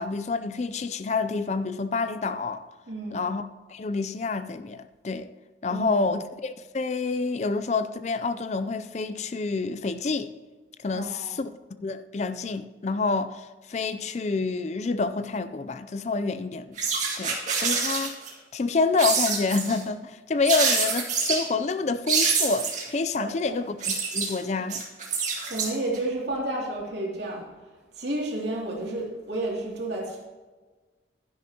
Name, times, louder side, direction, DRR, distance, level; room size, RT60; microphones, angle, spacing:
voice 1, 0.0-2.6 3.1-5.3 5.6-10.3 10.8-11.5 11.8-16.8 17.2-18.2 18.5-24.8, left 4 dB, 40° left, 0.4 m, -28 dB
voice 2, 2.9-3.3 5.7-6.1 10.9-11.4 23.2-23.6 25.2-30.3, right 1 dB, 70° right, 2.6 m, -32 dB
sound 1, 16.8-18.3 19.0-19.8 20.5-21.4 22.1-22.9 23.6-26.0, right 5 dB, 40° right, 2.1 m, -26 dB
12.0 x 10.5 x 2.9 m
head